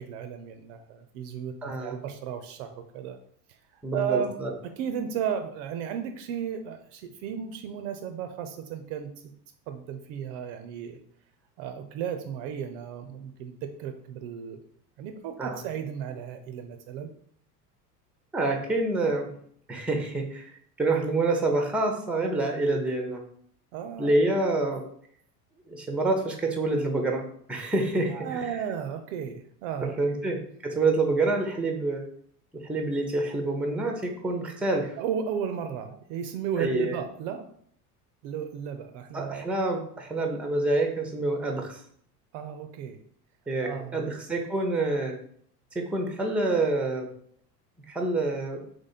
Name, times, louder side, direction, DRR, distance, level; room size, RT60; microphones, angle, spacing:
voice 1, 0.0-3.2 3.5-4.4 4.6-9.3 9.7-11.0 11.6-14.6 15.0-17.1 23.7-24.2 28.1-30.2 35.0-37.5 38.2-39.5 42.3-43.0 43.6-44.2, right 8 dB, 50° right, 7 dB, 0.6 m, -34 dB
voice 2, 1.6-2.0 3.8-4.5 15.4-15.6 18.3-19.3 19.7-20.5 20.8-23.2 24.0-24.8 25.7-27.2 27.5-28.4 30.0-32.0 32.6-34.9 36.6-37.0 39.1-41.8 43.5-45.1 45.9-47.1 47.9-48.6, right 2 dB, ahead, 3 dB, 0.7 m, -27 dB
3.6 x 3.1 x 4.1 m, 0.63 s
figure-of-eight pair, 80°, 48 cm